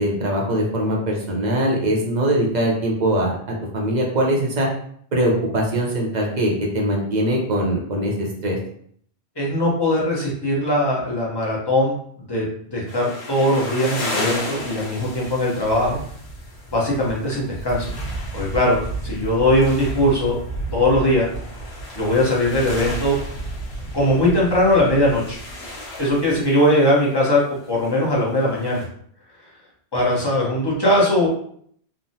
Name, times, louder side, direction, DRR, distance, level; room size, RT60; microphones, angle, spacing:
voice 1, 0.0-3.4 3.7-4.7 5.1-8.6, right 1 dB, 50° right, -1 dB, 0.7 m, -21 dB
voice 2, 9.4-12.0 12.3-12.4 12.7-16.0 16.7-17.9 18.3-20.4 20.7-21.3 21.9-23.1 23.9-25.4 26.0-28.8 29.9-31.3, left 1 dB, 25° left, -4 dB, 0.7 m, -20 dB
sound 1, 12.9-28.8, equal, 70° left, 1.1 m, -32 dB
3.3 x 2.1 x 2.6 m, 0.62 s
omnidirectional pair, 1.1 m